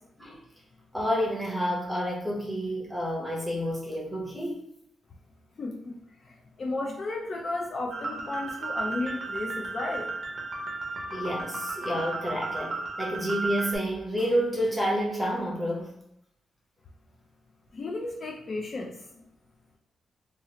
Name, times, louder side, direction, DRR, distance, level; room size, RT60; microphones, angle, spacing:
voice 1, 0.9-4.6 11.1-15.9, equal, 5° right, -3 dB, 0.8 m, -29 dB
voice 2, 5.6-5.9 6.2-10.1 17.7-19.0, left 2 dB, 35° left, 0 dB, 0.3 m, -33 dB
sound 1, 7.9-13.8, right 3 dB, 40° right, 0.5 m, -34 dB
3.0 x 2.3 x 2.8 m, 0.78 s
wide cardioid pair, 155°, 0 cm